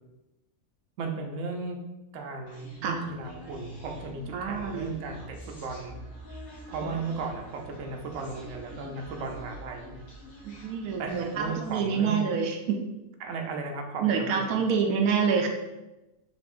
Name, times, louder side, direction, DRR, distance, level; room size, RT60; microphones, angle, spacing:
voice 1, 1.0-1.8 2.1-6.0 6.7-10.0 11.0-12.3 13.2-14.6, right 4 dB, 65° right, 2 dB, 0.9 m, -35 dB
Human voice, 2.5-11.9, equal, 50° left, 1.6 m, -46 dB
voice 2, 4.3-4.9 6.8-6.9 10.4-12.8 14.0-15.5, right 6 dB, 85° right, 3 dB, 1.1 m, -27 dB
6.1 x 3.4 x 2.5 m, 0.99 s
omnidirectional pair, 1.5 m